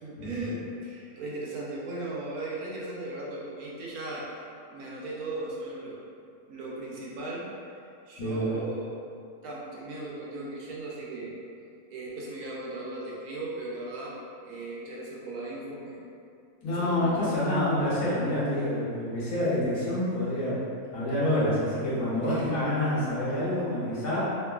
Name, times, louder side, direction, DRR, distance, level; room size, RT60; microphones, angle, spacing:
voice 1, 0.0-6.0 6.5-7.5 8.1-9.0 9.4-11.4 11.9-14.2 14.4-16.0 16.7-17.3 22.2-22.6, right 2 dB, 85° right, -5 dB, 1.1 m, -37 dB
voice 2, 8.2-8.6 16.6-20.6 20.9-24.2, left 1 dB, 85° left, -9 dB, 1.3 m, -27 dB
3.0 x 2.4 x 2.3 m, 2.4 s
omnidirectional pair, 1.5 m